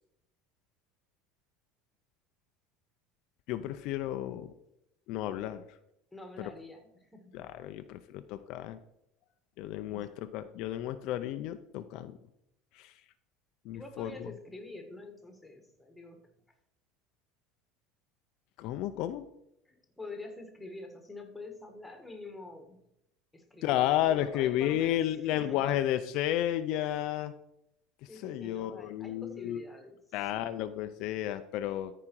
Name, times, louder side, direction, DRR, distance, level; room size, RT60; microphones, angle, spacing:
voice 1, 3.5-4.5 5.1-5.6 6.4-6.5 7.3-8.8 9.6-12.2 12.7-12.9 13.7-14.3 18.6-19.2 23.6-27.3 28.2-29.6 30.1-31.9, left 12 dB, 60° left, 9 dB, 0.5 m, -32 dB
voice 2, 6.1-7.3 9.9-10.2 13.7-16.2 19.6-22.8 23.3-25.0 25.2-25.8 28.1-30.5, left 2 dB, 5° left, 4 dB, 1.6 m, -47 dB
13.5 x 5.0 x 4.6 m, 0.81 s
cardioid pair, 140°, 0 cm